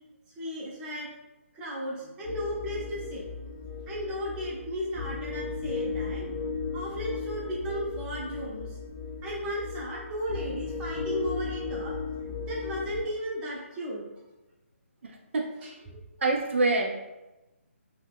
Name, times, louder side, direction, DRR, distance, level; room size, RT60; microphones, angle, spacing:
voice 1, 0.4-1.1 1.5-3.3 3.9-12.0 12.5-14.0 15.6-16.0, equal, 15° right, -6 dB, 0.7 m, -35 dB
sound 1, 2.2-13.0, left 4 dB, 25° left, 0.6 m, -36 dB
voice 2, 15.0-15.4 16.2-16.9, right 3 dB, 60° right, 2 dB, 0.4 m, -25 dB
2.7 x 2.3 x 3.4 m, 1.0 s
figure-of-eight pair, 150°, 8 cm